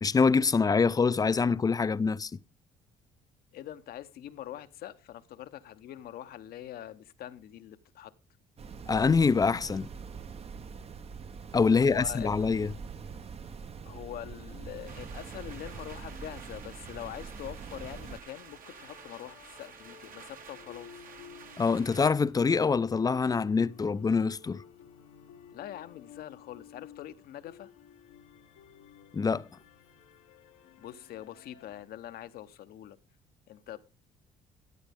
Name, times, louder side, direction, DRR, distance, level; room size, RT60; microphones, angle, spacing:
voice 1, 0.0-2.3 8.9-9.9 11.5-12.7 21.6-24.6 29.1-29.5, left 5 dB, 25° left, 0.5 m, -25 dB
voice 2, 3.5-8.1 11.7-12.5 13.8-20.9 25.5-27.7 30.8-33.0 33.5-33.8, left 12 dB, 70° left, 0.9 m, -44 dB
sound 1, 8.6-18.2, right 5 dB, 40° right, 0.8 m, -43 dB
sound 2, 14.9-22.1, right 6 dB, 60° right, 1.5 m, -50 dB
sound 3, 18.6-31.8, left 9 dB, 90° left, 1.2 m, -53 dB
13.5 x 10.5 x 3.5 m
supercardioid pair, 70°, 16 cm